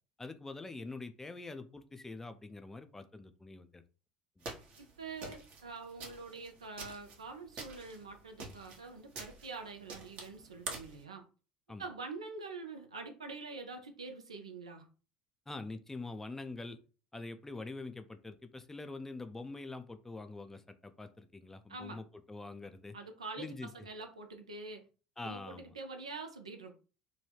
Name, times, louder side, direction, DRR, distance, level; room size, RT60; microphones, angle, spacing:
voice 1, 0.2-3.8 4.4-4.5 11.7-11.8 15.5-16.8 17.1-23.0 23.4-23.7 25.2-25.7, left 3 dB, 10° left, 0.4 m, -45 dB
sound 1, 4.4-11.0, right 3 dB, 45° right, 0.9 m, -47 dB
voice 2, 4.8-11.2 11.8-14.9 21.7-22.0 22.9-23.5 23.7-24.8 25.2-26.7, right 3 dB, 80° right, 0.5 m, -45 dB
2.8 x 2.2 x 3.3 m
figure-of-eight pair, 65°, 3 cm